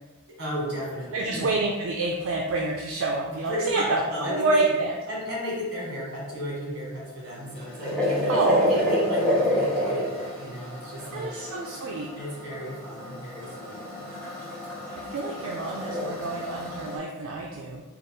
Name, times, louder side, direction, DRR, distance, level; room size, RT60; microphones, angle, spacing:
voice 1, 0.3-1.5 3.3-4.7 5.1-11.3 12.1-13.8, equal, 50° right, -4 dB, 1.4 m, -34 dB
voice 2, 1.1-4.9 8.3-8.8 11.1-12.1 14.9-17.8, right 2 dB, 70° right, -1 dB, 0.4 m, -27 dB
sound 1, 7.2-17.0, left 1 dB, 5° left, 0.8 m, -29 dB
3.9 x 2.4 x 3.5 m, 1.1 s
head